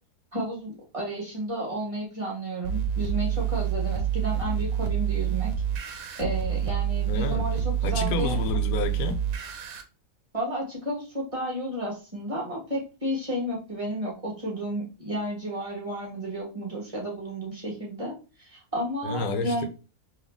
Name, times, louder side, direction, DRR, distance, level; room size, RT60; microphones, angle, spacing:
voice 1, 0.3-5.5 6.2-8.4 10.3-19.7, right 1 dB, 25° right, 1.5 m, -32 dB
sound 1, 2.6-9.8, right 9 dB, 75° right, 1.1 m, -27 dB
voice 2, 7.1-7.5 7.8-9.2 19.0-19.7, left 4 dB, 90° left, 1.1 m, -29 dB
3.9 x 3.1 x 3.4 m
omnidirectional pair, 1.5 m